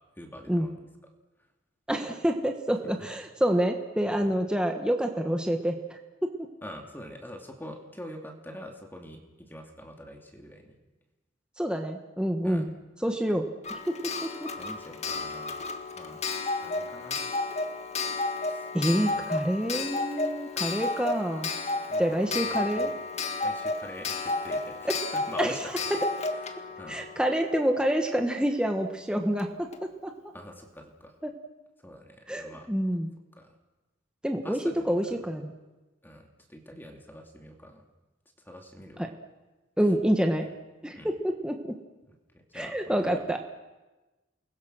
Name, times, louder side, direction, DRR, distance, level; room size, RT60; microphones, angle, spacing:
voice 1, 0.2-0.8 3.0-3.1 4.2-4.3 6.6-10.7 12.4-12.6 14.6-15.6 16.0-16.2 16.5-17.2 18.4-19.3 21.9-23.0 23.4-25.9 26.4-27.1 30.3-31.2 31.8-32.7 33.4-33.6 34.4-35.2 36.0-37.8 38.4-39.1 40.9-41.1 42.1-42.8 43.0-43.2, equal, 10° left, 2 dB, 2.5 m, -45 dB
voice 2, 1.9-6.5 11.6-12.7 13.0-14.5 18.7-21.5 22.0-22.9 24.8-25.0 25.4-25.5 26.9-30.1 31.2-31.3 32.3-33.1 34.2-34.6 34.9-35.5 39.0-39.1 39.8-40.5 40.8-41.8 42.5-43.4, equal, 5° right, 3 dB, 1.4 m, -28 dB
Clock, 13.6-28.2 29.4-29.5 29.7-29.8, left 3 dB, 35° left, 1.8 m, -32 dB
29.5 x 21.0 x 6.2 m, 1.1 s
head